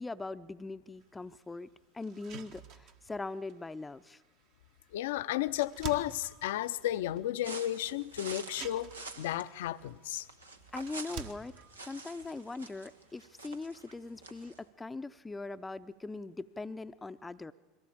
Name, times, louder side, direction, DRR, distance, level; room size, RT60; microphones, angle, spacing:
voice 1, 0.0-4.2 10.7-11.6 11.8-17.5, left 3 dB, 15° left, 12 dB, 0.6 m, -41 dB
sound 1, 1.0-1.1 1.6-1.7 2.0-13.7, right 7 dB, 55° right, 1.6 m, -50 dB
voice 2, 4.9-10.3, left 14 dB, 65° left, 14 dB, 0.6 m, -33 dB
sound 2, 7.4-14.6, right 3 dB, 85° right, 1.2 m, -47 dB
22.0 x 17.5 x 8.7 m, 1.2 s
figure-of-eight pair, 75°, 0 cm